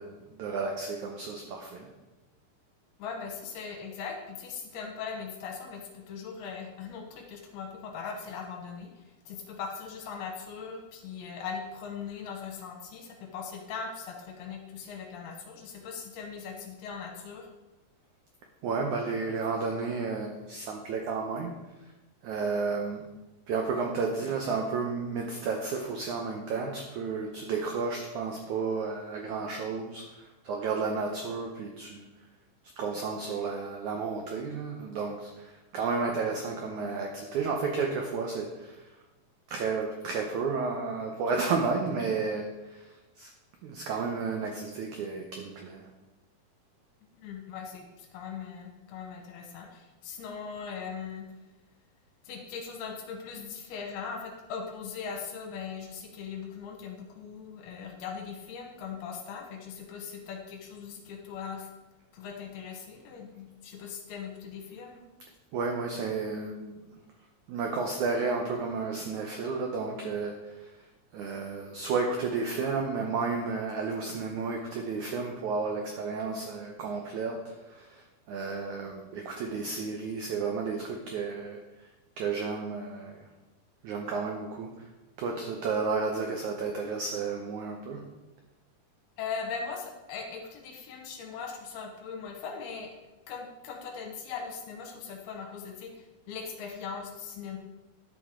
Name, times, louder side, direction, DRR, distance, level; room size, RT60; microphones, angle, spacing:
voice 1, 0.0-1.9 18.6-21.5 22.2-23.0 23.5-32.1 32.8-38.9 39.5-43.3 43.6-45.9 65.5-66.9 67.5-70.9 71.1-81.6 82.2-83.3 83.8-84.9 85.2-88.0, right 4 dB, 85° right, 2 dB, 1.7 m, -32 dB
voice 2, 3.0-8.9 9.3-17.5 47.1-51.3 52.2-61.7 62.1-65.0 89.2-92.9 93.3-97.6, left 6 dB, 75° left, 2 dB, 3.0 m, -40 dB
10.5 x 7.2 x 3.7 m, 1.1 s
omnidirectional pair, 4.7 m